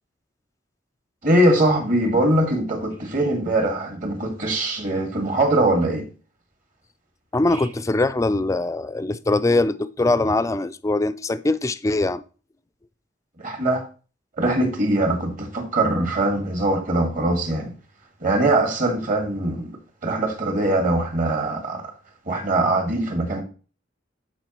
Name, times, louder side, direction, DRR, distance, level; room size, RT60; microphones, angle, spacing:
voice 1, 1.2-6.1 13.4-13.8 14.4-17.7 18.2-19.8 20.0-21.8 22.3-23.4, right 1 dB, 45° right, 1.8 m, -22 dB
voice 2, 7.3-12.2, left 2 dB, 15° left, 0.3 m, -22 dB
12.5 x 4.8 x 3.0 m
head